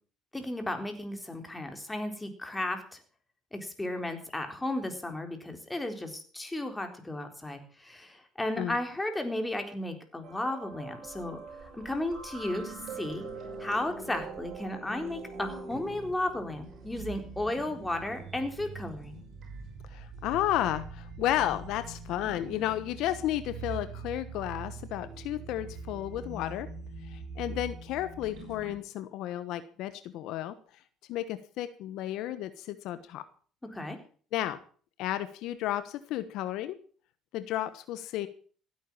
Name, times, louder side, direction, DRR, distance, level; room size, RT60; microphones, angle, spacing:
voice 1, 0.3-3.0 3.5-11.4 11.7-13.3 13.6-19.2 33.7-34.0, left 1 dB, 10° left, 5 dB, 4.0 m, -34 dB
sound 1, 10.2-28.8, right 4 dB, 55° right, 6.1 m, -43 dB
voice 2, 19.9-26.7 27.1-30.5 31.1-33.2 34.3-34.6 35.0-36.8 37.3-38.3, left 13 dB, 75° left, 12 dB, 1.2 m, -32 dB
16.0 x 9.3 x 7.3 m, 0.43 s
supercardioid pair, 90°, 0 cm